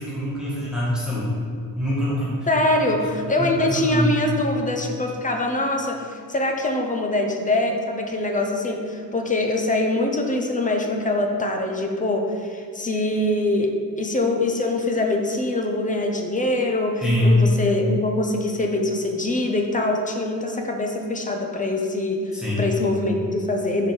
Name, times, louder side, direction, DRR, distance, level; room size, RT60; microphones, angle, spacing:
voice 1, 0.0-1.3 1.8-2.5 3.4-4.1 17.0-17.4 22.3-22.7, left 1 dB, ahead, -8 dB, 1.4 m, -23 dB
voice 2, 2.5-23.9, left 2 dB, 20° left, 3 dB, 0.6 m, -23 dB
4.9 x 4.5 x 5.4 m, 2.2 s
wide cardioid pair, 145°, 35 cm